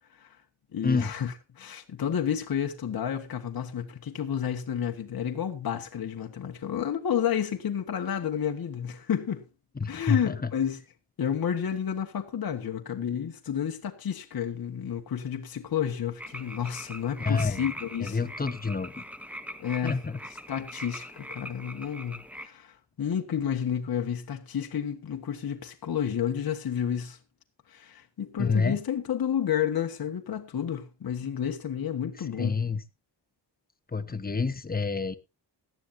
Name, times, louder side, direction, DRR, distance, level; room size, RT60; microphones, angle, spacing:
voice 1, 0.7-9.4 9.9-10.8 11.2-18.3 19.6-20.0 20.5-27.2 27.7-32.6, left 8 dB, 55° left, 1.4 m, -31 dB
voice 2, 9.8-10.4 17.2-17.7 18.0-19.0 19.8-20.2 28.4-28.8 32.4-32.8 33.9-35.1, left 4 dB, 20° left, 1.0 m, -28 dB
sound 1, 16.2-22.5, equal, 5° right, 1.2 m, -42 dB
18.0 x 12.0 x 2.7 m
wide cardioid pair, 120°, 44 cm